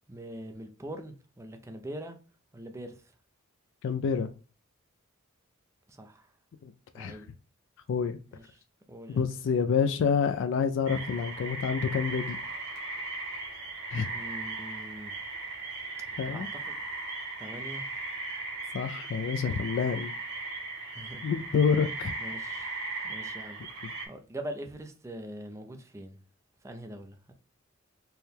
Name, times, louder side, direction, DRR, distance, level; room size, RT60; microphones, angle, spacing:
voice 1, 0.1-2.2 2.5-3.1 5.9-6.3 6.9-7.3 8.3-8.6 8.9-9.2 14.1-15.2 16.3-16.7 17.4-17.9 20.9-21.3 22.2-22.7 23.0-26.2 26.6-27.3, right 1 dB, 15° right, 0.5 m, -43 dB
voice 2, 3.8-4.3 6.6-7.2 7.9-8.2 9.1-12.4 13.9-14.1 16.2-16.5 18.7-20.1 21.2-22.1, left 6 dB, 60° left, 0.3 m, -28 dB
sound 1, 10.9-24.1, right 3 dB, 85° right, 1.2 m, -37 dB
4.5 x 2.2 x 3.3 m
head